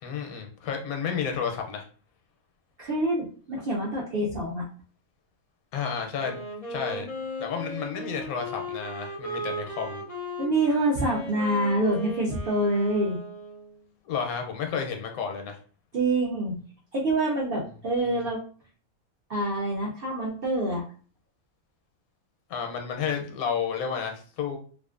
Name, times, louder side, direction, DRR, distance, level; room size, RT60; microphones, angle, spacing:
voice 1, 0.0-1.9 5.7-6.4 6.7-7.1 7.4-10.0 14.1-15.6 22.5-24.6, left 6 dB, 80° left, 4 dB, 1.0 m, -31 dB
voice 2, 2.8-4.7 10.4-13.2 15.9-16.6 16.9-18.4 19.3-20.8, right 1 dB, 65° right, -4 dB, 0.6 m, -26 dB
Wind instrument woodwind instrument, 6.1-13.8, equal, 60° left, 0.3 m, -37 dB
2.5 x 2.4 x 2.4 m, 0.42 s
omnidirectional pair, 1.5 m